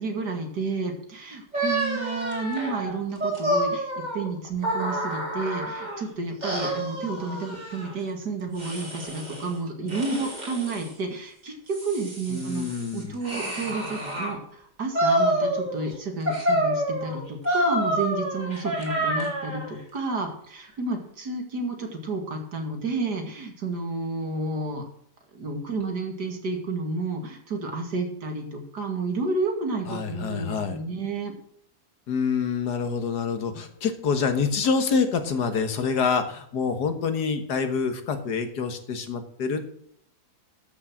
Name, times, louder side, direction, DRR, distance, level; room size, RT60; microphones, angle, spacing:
voice 1, 0.0-24.8 25.3-31.3, right 3 dB, 90° right, 3 dB, 2.9 m, -31 dB
sound 1, 1.5-6.0 6.4-7.9 8.6-9.5 9.9-10.9 11.5-14.3 14.9-15.9 16.2-19.7, right 1 dB, 25° right, 3.3 m, -28 dB
voice 2, 12.3-13.2 29.9-30.8 32.1-39.8, left 5 dB, 90° left, 8 dB, 2.0 m, -26 dB
13.0 x 6.4 x 6.2 m, 0.66 s
omnidirectional pair, 1.7 m